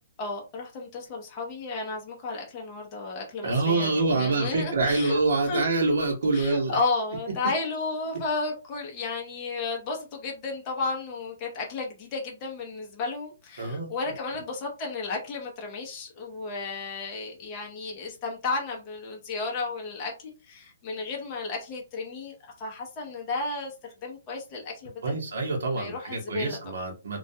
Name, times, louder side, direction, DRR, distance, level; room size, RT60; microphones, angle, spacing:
voice 1, 0.2-5.6 6.3-25.2 25.7-26.7, left 3 dB, 20° left, 0.6 m, -33 dB
voice 2, 3.4-6.8 13.6-13.9 25.0-27.2, right 3 dB, 70° right, 0.8 m, -26 dB
2.2 x 2.2 x 2.7 m
hypercardioid pair, 170°, 0 cm